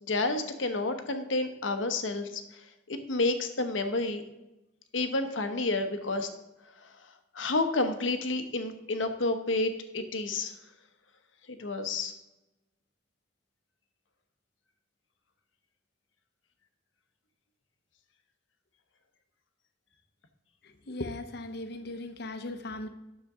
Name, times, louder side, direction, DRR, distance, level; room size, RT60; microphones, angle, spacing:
voice 1, 0.0-2.4 2.9-4.2 4.9-6.3 6.8-6.9 7.3-10.5 11.5-12.1, left 2 dB, 85° left, 7 dB, 1.0 m, -30 dB
voice 2, 20.9-22.9, left 2 dB, 60° left, 8 dB, 0.9 m, -37 dB
9.5 x 6.7 x 3.7 m, 0.98 s
head